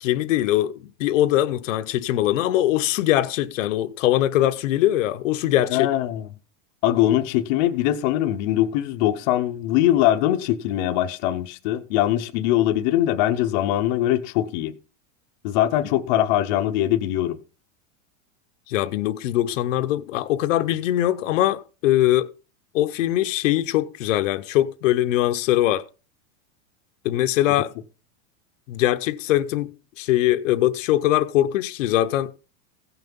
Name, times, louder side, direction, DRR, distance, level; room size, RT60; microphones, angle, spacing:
voice 1, 0.0-5.9 18.7-22.3 22.7-25.8 27.0-27.7 28.7-32.3, left 14 dB, 65° left, 0.8 m, -22 dB
voice 2, 5.7-6.3 6.8-14.7 15.4-17.4, left 13 dB, 35° left, 0.7 m, -22 dB
16.0 x 5.9 x 5.3 m
supercardioid pair, 175°, 41 cm